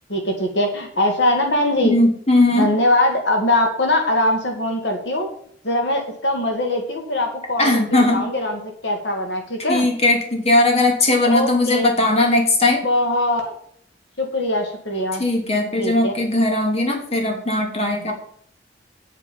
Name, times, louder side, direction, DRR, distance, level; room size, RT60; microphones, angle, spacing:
voice 1, 0.1-1.9 2.6-5.3 5.6-9.9 11.2-11.9 12.8-13.5 14.2-15.2 15.8-16.1, left 1 dB, 70° left, 3 dB, 2.1 m, -21 dB
voice 2, 1.8-2.7 7.6-8.2 9.7-12.8 15.2-18.1, left 2 dB, 35° left, 2 dB, 2.6 m, -18 dB
9.5 x 8.5 x 5.4 m, 0.63 s
head